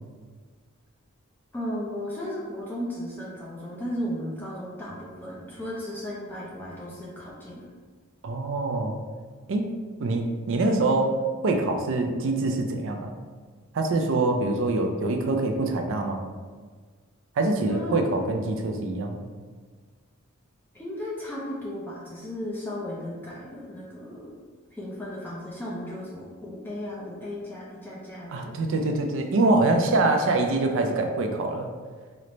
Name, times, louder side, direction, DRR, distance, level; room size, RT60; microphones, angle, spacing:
voice 1, 1.5-7.7 17.7-18.0 20.7-24.4 24.7-28.6, left 1 dB, 10° left, -6 dB, 0.5 m, -35 dB
voice 2, 8.2-9.0 9.5-9.7 10.0-11.2 11.4-13.1 13.7-16.2 17.4-19.2 28.3-31.7, right 2 dB, 60° right, 4 dB, 0.4 m, -24 dB
3.1 x 2.1 x 3.8 m, 1.5 s
head